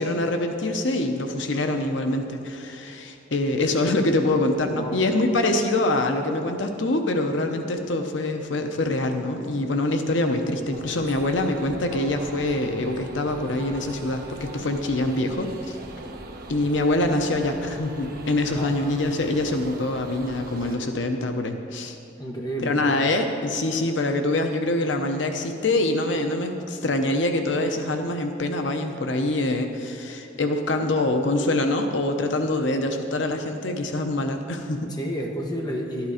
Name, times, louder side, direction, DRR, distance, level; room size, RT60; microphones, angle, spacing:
voice 1, 0.0-15.8 16.5-22.0 22.6-34.9, left 2 dB, 80° left, 5 dB, 0.8 m, -25 dB
voice 2, 4.6-4.9 18.5-18.7 22.2-22.9 34.9-36.1, equal, 20° left, 0 dB, 1.3 m, -31 dB
sound 1, 10.7-20.8, right 1 dB, 50° right, 1.1 m, -40 dB
12.0 x 11.0 x 5.0 m, 2.8 s
head